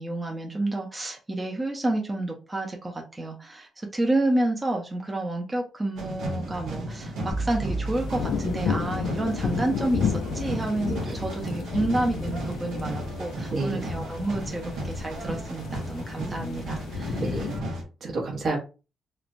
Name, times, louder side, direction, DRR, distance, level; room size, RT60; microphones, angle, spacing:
voice 1, 0.0-17.2, right 2 dB, 20° right, 1 dB, 0.5 m, -29 dB
sound 1, 6.0-17.8, right 1 dB, 85° right, 0.9 m, -35 dB
sound 2, 7.3-9.4, right 2 dB, 40° left, 0.6 m, -34 dB
sound 3, 7.9-17.6, left 6 dB, 85° left, 0.4 m, -32 dB
voice 2, 13.5-13.8 17.2-17.6 18.0-18.6, right 3 dB, 60° right, 0 dB, 0.9 m, -29 dB
3.1 x 2.0 x 2.5 m, 0.32 s
cardioid pair, 110°, 0 cm